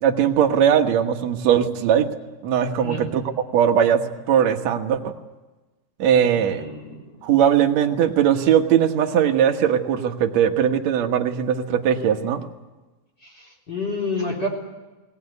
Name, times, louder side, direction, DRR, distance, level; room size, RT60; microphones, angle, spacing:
voice 1, 0.0-2.1 2.4-3.2 3.5-5.1 6.0-6.7 7.2-12.4, right 9 dB, 60° right, 4 dB, 2.0 m, -19 dB
voice 2, 6.3-7.2 13.2-14.5, left 2 dB, 25° left, -1 dB, 4.4 m, -30 dB
20.0 x 18.5 x 9.6 m, 1.2 s
omnidirectional pair, 4.5 m